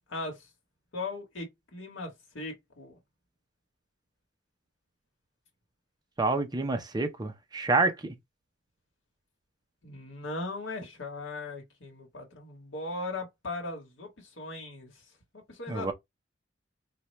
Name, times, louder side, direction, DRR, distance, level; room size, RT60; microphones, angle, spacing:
voice 1, 0.1-0.5 0.9-3.0 9.8-14.9 15.5-15.9, left 2 dB, 70° left, 1.1 m, -38 dB
voice 2, 6.2-8.1 15.7-15.9, right 3 dB, 20° right, 0.6 m, -28 dB
4.2 x 2.2 x 3.1 m
head